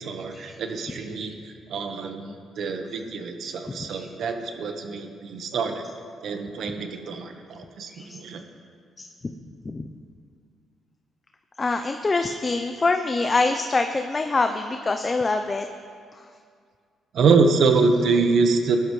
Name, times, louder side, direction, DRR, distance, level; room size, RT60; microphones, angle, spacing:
voice 1, 0.0-5.8 6.2-8.4 17.1-18.8, right 4 dB, 65° right, 5 dB, 1.3 m, -25 dB
voice 2, 11.6-15.7, left 3 dB, 30° left, 6 dB, 0.6 m, -25 dB
19.0 x 11.5 x 3.2 m, 2.1 s
cardioid pair, 90°, 0 cm